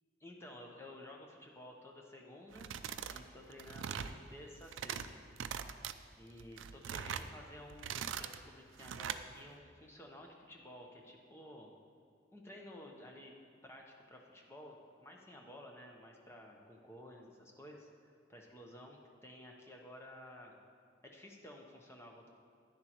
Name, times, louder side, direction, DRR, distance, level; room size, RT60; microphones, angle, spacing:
voice 1, 0.2-2.8 3.1-5.2 6.2-11.7 12.3-13.3 13.6-17.9 18.3-20.6 21.0-22.3, left 1 dB, 15° left, 0 dB, 0.9 m, -53 dB
sound 1, 2.5-3.2 3.5-4.2 4.6-5.1 5.4-5.9 6.4-7.3 7.7-8.4 8.8-9.2, right 8 dB, 85° right, 0.4 m, -41 dB
10.5 x 10.0 x 3.0 m, 2.4 s
head